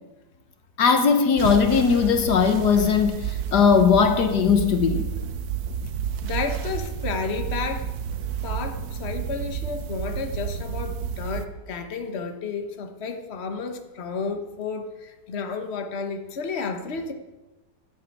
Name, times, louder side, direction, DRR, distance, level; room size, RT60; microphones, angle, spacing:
voice 1, 0.8-5.1, left 6 dB, 70° left, 1.6 m, -19 dB
sound 1, 1.4-11.5, right 8 dB, 65° right, 1.2 m, -30 dB
voice 2, 6.2-7.9 8.4-17.1, left 5 dB, 40° left, 1.4 m, -32 dB
11.0 x 10.5 x 8.6 m
omnidirectional pair, 1.8 m